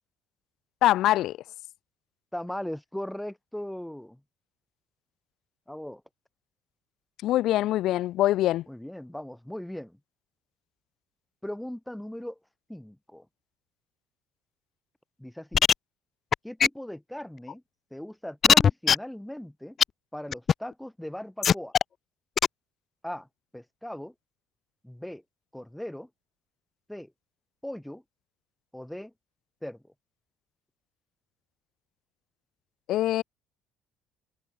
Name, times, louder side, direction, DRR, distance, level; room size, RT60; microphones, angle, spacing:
voice 1, 0.8-1.4 7.2-8.6 32.9-33.2, left 14 dB, 65° left, 3.5 m, -23 dB
voice 2, 2.3-4.2 5.7-6.0 8.7-10.0 11.4-12.4 12.7-13.3 15.2-15.6 16.4-17.6 17.9-19.8 20.1-21.7 23.0-23.3 23.5-24.1 24.8-25.2 25.5-26.1 26.9-27.1 27.6-28.0 28.7-29.1 29.6-29.8, left 1 dB, 5° left, 5.3 m, -38 dB
sound 1, 15.5-15.7 16.3-16.4 16.6-16.7 17.5-17.6 18.4-19.0 19.8-19.9 20.3-20.5 21.4-21.8 22.4-22.5, left 7 dB, 35° left, 0.4 m, -18 dB
cardioid pair, 145°, 0 cm